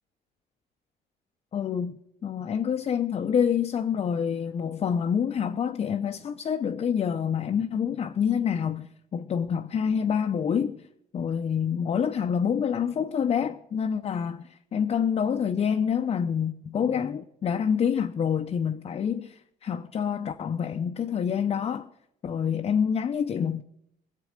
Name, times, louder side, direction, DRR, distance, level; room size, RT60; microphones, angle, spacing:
voice 1, 1.5-10.8 11.1-21.9 22.2-23.6, left 7 dB, 35° left, 0.6 m, -27 dB
20.0 x 7.5 x 5.1 m
cardioid pair, 110°, 17 cm